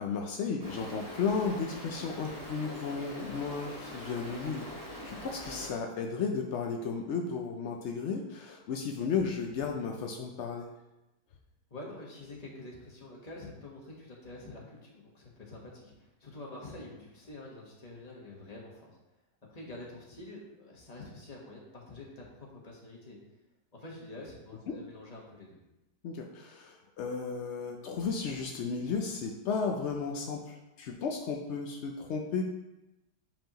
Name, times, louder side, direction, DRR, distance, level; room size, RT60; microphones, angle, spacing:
voice 1, 0.0-4.7 5.0-10.7 24.7-24.8 26.0-32.4, left 5 dB, 80° left, 2 dB, 0.6 m, -34 dB
Stream, 0.6-5.7, equal, 15° right, 0.8 m, -43 dB
voice 2, 11.7-19.0 19.5-23.2 23.7-25.6, left 2 dB, 25° left, -3 dB, 1.2 m, -47 dB
7.0 x 5.3 x 3.0 m, 0.96 s
omnidirectional pair, 1.8 m